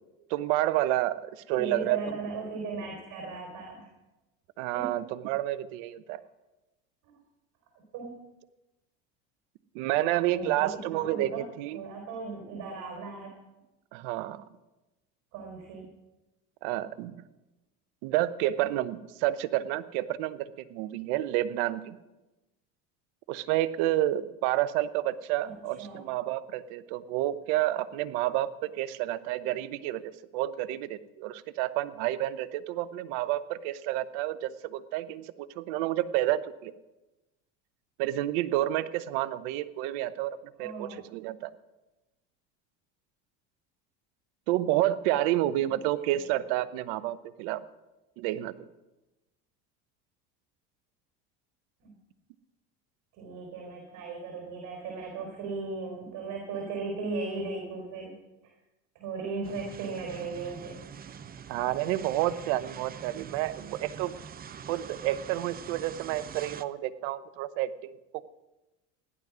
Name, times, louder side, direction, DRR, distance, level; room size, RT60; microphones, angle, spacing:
voice 1, 0.3-1.2 1.5-2.2 4.6-6.2 9.7-11.8 13.9-14.4 16.6-17.1 18.0-22.0 23.3-36.7 38.0-41.5 44.5-47.6 48.2-48.5 61.5-64.1 64.7-68.0, right 14 dB, 75° right, 13 dB, 0.9 m, -30 dB
voice 2, 1.5-3.9 4.7-5.0 7.9-8.1 9.9-11.5 11.7-13.3 15.3-15.9 25.4-26.0 40.6-41.0 51.8-51.9 53.1-58.2 58.9-60.8, right 4 dB, 60° right, 1 dB, 4.1 m, -37 dB
sound 1, 59.4-66.6, right 8 dB, 25° right, 0.6 m, -44 dB
15.0 x 11.0 x 6.1 m, 1.0 s
supercardioid pair, 105°, 34 cm